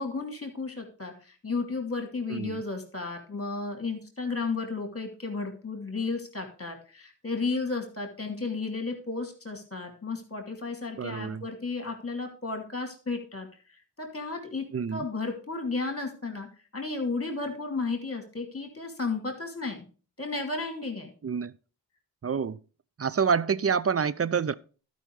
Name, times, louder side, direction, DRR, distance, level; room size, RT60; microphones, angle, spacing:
voice 1, 0.0-13.5 14.0-16.5 16.7-19.8 20.2-21.1, left 3 dB, 35° left, 2.9 m, -33 dB
voice 2, 2.3-2.6 11.0-11.5 14.7-15.1 21.2-21.5 22.2-22.6 23.0-24.5, right 6 dB, 35° right, 0.5 m, -27 dB
12.0 x 5.5 x 4.8 m
cardioid pair, 45°, 40 cm